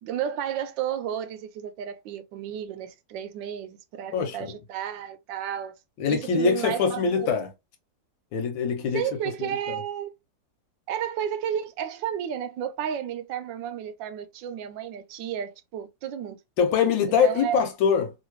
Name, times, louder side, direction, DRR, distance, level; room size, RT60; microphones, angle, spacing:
voice 1, 0.0-5.7 6.1-7.4 8.9-10.1 10.9-16.4 17.2-17.7, right 9 dB, 80° right, 1.2 m, -32 dB
voice 2, 6.0-7.5 8.3-9.1 9.4-9.8 16.6-18.1, left 6 dB, 85° left, 1.5 m, -23 dB
3.1 x 2.8 x 3.0 m
omnidirectional pair, 2.1 m